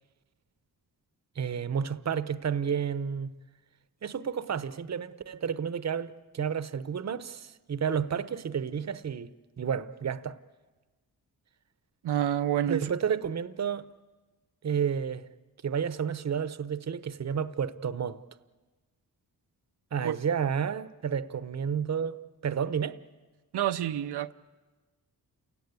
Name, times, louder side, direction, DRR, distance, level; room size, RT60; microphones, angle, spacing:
voice 1, 1.4-3.3 4.0-9.3 9.6-10.4 12.7-13.8 14.6-15.2 15.6-18.2 19.9-22.2 22.4-23.0, right 7 dB, 45° right, 0.9 m, -31 dB
voice 2, 12.0-12.9 20.0-20.2 23.5-24.3, right 11 dB, 90° right, 0.7 m, -28 dB
29.5 x 17.5 x 9.6 m
wide cardioid pair, 110°, 39 cm